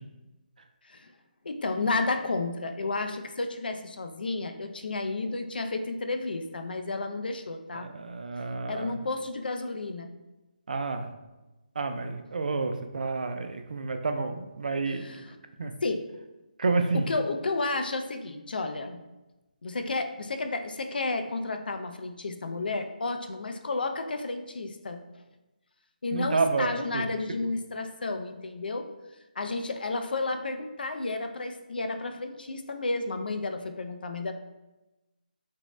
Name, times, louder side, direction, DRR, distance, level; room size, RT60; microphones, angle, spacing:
voice 1, 1.4-7.9 8.7-10.1 14.9-15.4 15.8-16.0 16.9-19.0 19.6-25.2 26.0-28.9 29.4-34.3, left 3 dB, 80° left, 7 dB, 0.3 m, -32 dB
voice 2, 7.7-8.9 10.7-11.1 11.8-15.1 15.6-15.7 16.6-17.0 26.1-27.0, right 3 dB, 60° right, 7 dB, 0.3 m, -29 dB
2.5 x 2.0 x 3.1 m, 1.1 s
hypercardioid pair, 170°, 5 cm